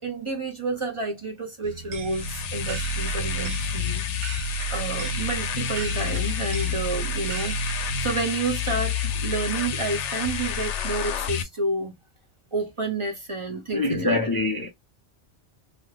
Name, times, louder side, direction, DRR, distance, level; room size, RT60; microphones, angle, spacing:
voice 1, 0.0-4.0 4.3-7.6 8.0-11.9 12.5-14.2, right 3 dB, 30° right, 0.8 m, -30 dB
sound 1, 1.6-8.1, right 4 dB, 85° right, 1.0 m, -38 dB
sound 2, 2.0-11.4, left 4 dB, 90° left, 0.9 m, -29 dB
voice 2, 13.7-14.7, left 2 dB, 25° left, 0.5 m, -24 dB
2.9 x 2.3 x 3.2 m
omnidirectional pair, 1.2 m